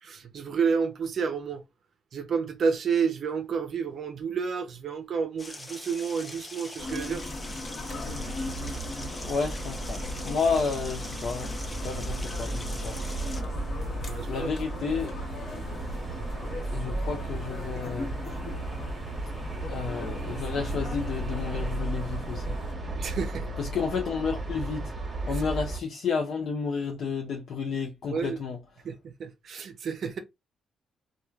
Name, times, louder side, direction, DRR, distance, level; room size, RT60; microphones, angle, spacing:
voice 1, 0.0-1.6 2.1-7.2 14.0-14.5 23.0-23.5 25.2-25.4 28.1-28.4 28.8-30.2, right 6 dB, 55° right, 0.5 m, -30 dB
sound 1, 5.4-13.4, left 2 dB, 20° left, 0.7 m, -42 dB
sound 2, 6.8-22.7, left 2 dB, 45° left, 1.0 m, -39 dB
sound 3, 7.9-25.8, right 2 dB, 25° right, 1.1 m, -35 dB
voice 2, 9.2-13.0 13.4-13.5 14.3-15.1 16.7-18.1 19.7-22.6 23.6-24.9 25.2-28.6, left 5 dB, 65° left, 0.5 m, -31 dB
3.1 x 2.2 x 2.3 m
cardioid pair, 90°, 0 cm